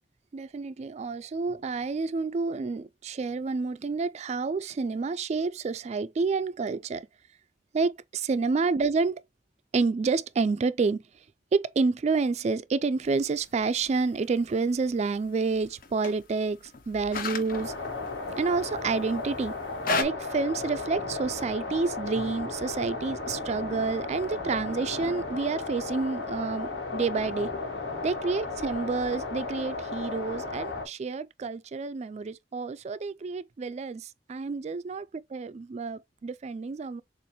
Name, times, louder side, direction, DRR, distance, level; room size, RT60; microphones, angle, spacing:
voice 1, 0.3-7.1 7.7-9.2 9.7-11.0 11.5-17.7 18.4-19.5 20.0-27.5 28.0-35.1 35.3-37.0, right 4 dB, 40° right, 0.3 m, -29 dB
sound 1, 13.0-20.0, left 3 dB, 55° left, 0.8 m, -36 dB
sound 2, 17.5-30.8, left 3 dB, 80° left, 1.7 m, -35 dB
6.9 x 2.5 x 2.9 m
head